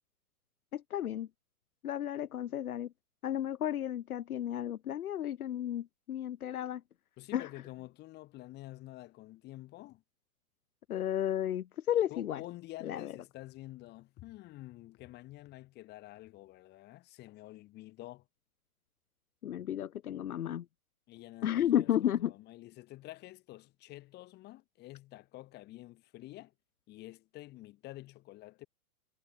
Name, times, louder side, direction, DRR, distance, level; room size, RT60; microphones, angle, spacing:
voice 1, 0.7-1.3 1.8-2.9 3.2-6.8 7.3-7.5 10.9-12.4 12.8-13.1 19.4-20.7 21.4-22.3, left 11 dB, 75° left, 1.8 m, -33 dB
voice 2, 7.2-10.0 12.1-18.3 21.1-21.9 22.2-26.5 26.9-28.7, left 17 dB, 20° left, 6.2 m, -49 dB
hypercardioid pair, 165°, 44 cm